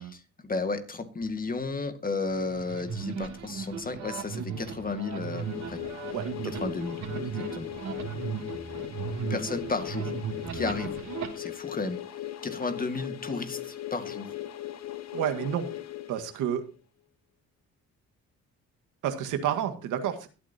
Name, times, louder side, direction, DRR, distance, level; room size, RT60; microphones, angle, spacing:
voice 1, 0.0-5.8 6.4-7.0 7.3-7.7 9.3-10.1 10.5-11.0 11.3-12.0 12.4-14.3, left 3 dB, 30° left, 8 dB, 2.0 m, -33 dB
sound 1, 2.3-11.3, right 6 dB, 70° right, 3.0 m, -36 dB
sound 2, 4.9-16.8, left 13 dB, 60° left, 1.3 m, -39 dB
voice 2, 6.1-6.7 15.1-15.7 16.1-16.7 19.0-20.3, right 9 dB, 90° right, 7 dB, 1.9 m, -30 dB
22.5 x 8.7 x 2.8 m, 0.31 s
cardioid pair, 90°, 30 cm